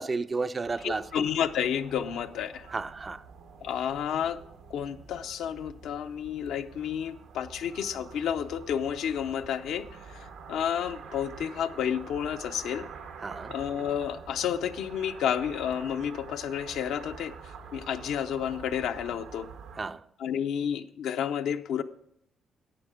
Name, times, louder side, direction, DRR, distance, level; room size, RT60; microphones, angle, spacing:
voice 1, 0.0-1.2 2.7-3.2 13.2-13.5 19.8-20.0, right 3 dB, 30° right, 0.4 m, -32 dB
sound 1, 0.6-19.8, right 6 dB, 90° right, 1.1 m, -47 dB
voice 2, 0.8-2.7 3.6-4.4 4.7-12.9 13.5-17.3 17.7-19.5 20.2-21.8, left 9 dB, 80° left, 0.6 m, -31 dB
11.5 x 8.3 x 5.0 m
cardioid pair, 90°, 0 cm